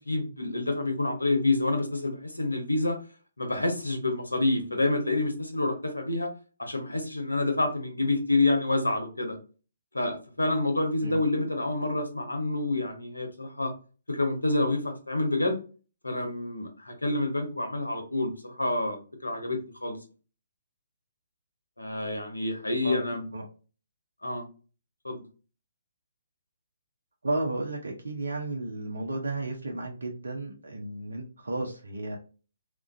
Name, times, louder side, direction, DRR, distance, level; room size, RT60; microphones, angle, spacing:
voice 1, 0.1-3.0 3.4-6.3 6.6-9.3 9.9-13.7 14.1-15.6 16.0-20.0 21.8-23.3 24.2-24.4 25.0-25.2, left 2 dB, 85° left, 4 dB, 0.7 m, -28 dB
voice 2, 27.2-32.2, right 2 dB, 70° right, 1 dB, 0.5 m, -33 dB
2.3 x 2.1 x 2.6 m, 0.35 s
figure-of-eight pair, 135°, 0 cm